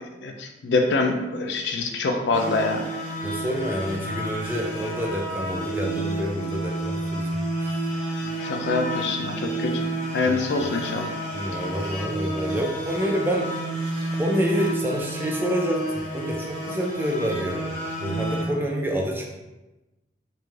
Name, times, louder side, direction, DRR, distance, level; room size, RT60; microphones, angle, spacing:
voice 1, 0.0-2.8 8.2-9.9 10.1-11.1, left 3 dB, 70° left, 4 dB, 0.4 m, -25 dB
sound 1, 2.3-18.5, right 1 dB, 35° left, 0.9 m, -30 dB
voice 2, 3.2-7.3 7.6-7.9 10.2-10.4 11.3-13.6 14.2-17.7 18.0-19.3, equal, 10° right, -1 dB, 0.3 m, -28 dB
3.1 x 2.5 x 2.3 m, 1.0 s
head